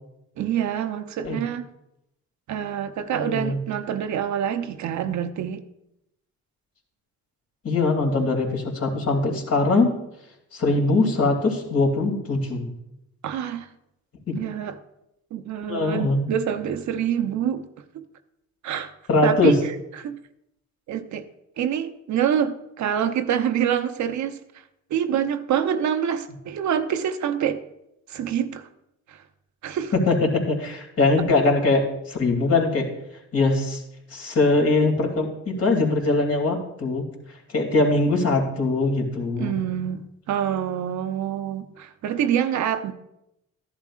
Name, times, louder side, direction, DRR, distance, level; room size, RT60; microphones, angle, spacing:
voice 1, 0.4-1.7 2.5-5.6 13.2-13.7 14.3-14.8 15.3-17.7 17.9-18.0 18.6-18.9 19.2-19.6 19.9-20.2 20.9-21.3 21.6-24.6 24.9-27.6 28.1-28.7 29.1-29.2 29.6-29.9 39.4-42.9, right 9 dB, 70° right, 9 dB, 0.8 m, -26 dB
voice 2, 3.1-3.6 7.6-9.9 10.5-12.7 14.3-14.4 15.7-16.3 19.1-19.6 30.1-32.9 33.3-33.8 34.1-37.1 37.5-39.5, left 3 dB, 50° left, 0 dB, 2.7 m, -22 dB
13.5 x 11.0 x 2.4 m, 0.84 s
cardioid pair, 90°, 30 cm